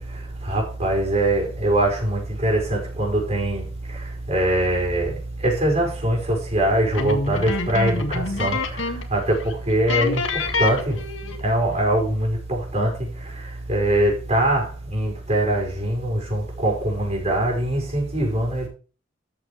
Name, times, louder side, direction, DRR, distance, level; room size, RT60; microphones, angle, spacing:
voice 1, 0.0-11.0 11.4-18.7, right 1 dB, 35° right, 5.5 m, -23 dB
sound 1, 6.9-9.2 9.4-9.5 9.9-11.5, left 3 dB, 90° left, 1.8 m, -26 dB
13.5 x 8.6 x 3.1 m
head